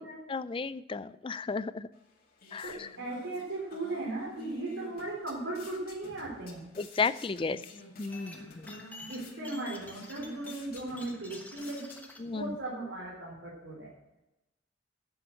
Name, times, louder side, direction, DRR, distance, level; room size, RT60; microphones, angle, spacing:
voice 1, 0.3-1.9 2.5-2.9 6.8-7.6 8.0-8.8 12.2-12.5, left 4 dB, 25° left, 15 dB, 0.4 m, -33 dB
sound 1, 1.9-12.5, left 1 dB, 50° left, 2.3 m, -50 dB
voice 2, 2.6-6.7 9.1-12.0 12.3-13.9, right 2 dB, 90° right, -6 dB, 3.8 m, -37 dB
sound 2, 8.1-12.2, left 2 dB, 10° left, 1.2 m, -49 dB
9.2 x 7.3 x 7.8 m, 0.94 s
head